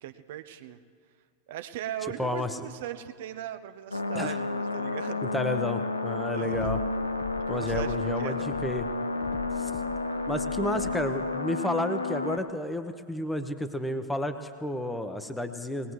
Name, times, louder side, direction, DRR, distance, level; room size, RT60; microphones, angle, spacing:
voice 1, 0.0-0.8 1.5-5.2 6.3-6.7 7.5-8.5, right 11 dB, 60° right, 10 dB, 0.7 m, -38 dB
voice 2, 2.2-2.5 4.1-4.4 5.2-6.8 7.5-8.9 9.6-9.7 10.3-15.9, left 1 dB, 5° left, 8 dB, 0.9 m, -31 dB
sound 1, 3.9-12.4, left 3 dB, 85° left, 0.6 m, -31 dB
sound 2, 6.5-8.1 8.4-11.2, left 6 dB, 35° left, 1.1 m, -40 dB
20.0 x 19.5 x 3.2 m, 2.1 s
figure-of-eight pair, 90°, 0 cm